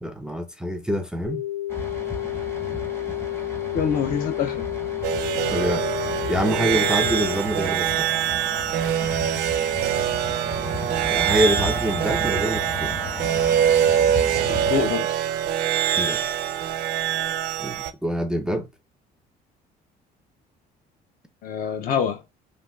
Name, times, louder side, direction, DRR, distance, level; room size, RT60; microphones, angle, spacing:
voice 1, 0.0-1.4 5.5-5.8 6.3-8.1 11.1-12.9 16.0-16.2 17.6-18.7, equal, 5° right, 0.4 m, -26 dB
sound 1, 1.2-7.3, left 13 dB, 90° left, 1.0 m, -30 dB
sound 2, 1.7-14.9, left 1 dB, 15° left, 0.7 m, -35 dB
voice 2, 3.7-4.7 14.5-15.1 21.4-22.2, left 7 dB, 55° left, 0.7 m, -25 dB
sound 3, 5.0-17.9, right 10 dB, 70° right, 0.4 m, -24 dB
3.4 x 2.5 x 2.2 m
cardioid pair, 110°, 17 cm